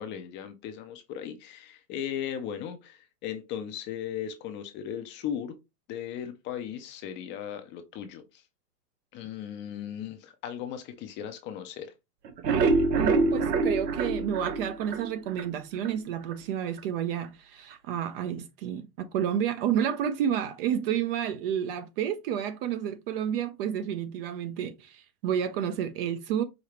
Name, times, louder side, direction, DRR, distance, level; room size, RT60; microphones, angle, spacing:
voice 1, 0.0-5.6 5.9-8.4 9.1-11.9, left 9 dB, 25° left, 0.5 m, -37 dB
sound 1, 12.2-15.5 15.8-15.9 16.3-16.4 16.8-16.9, right 4 dB, 85° right, 1.0 m, -25 dB
voice 2, 12.9-26.4, right 9 dB, 40° right, 0.4 m, -30 dB
5.0 x 2.7 x 3.0 m
hypercardioid pair, 125°, 47 cm